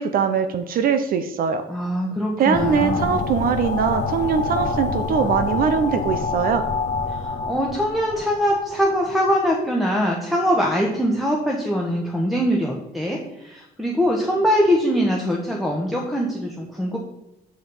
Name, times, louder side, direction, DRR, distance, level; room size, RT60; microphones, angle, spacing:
voice 1, 0.0-1.6 2.4-6.6, right 6 dB, 60° right, 9 dB, 0.8 m, -21 dB
voice 2, 1.7-3.2 7.1-17.0, equal, ahead, -3 dB, 1.2 m, -22 dB
sound 1, 2.5-8.9, left 4 dB, 45° left, 1.0 m, -27 dB
7.3 x 5.0 x 5.5 m, 0.92 s
cardioid pair, 110°, 17 cm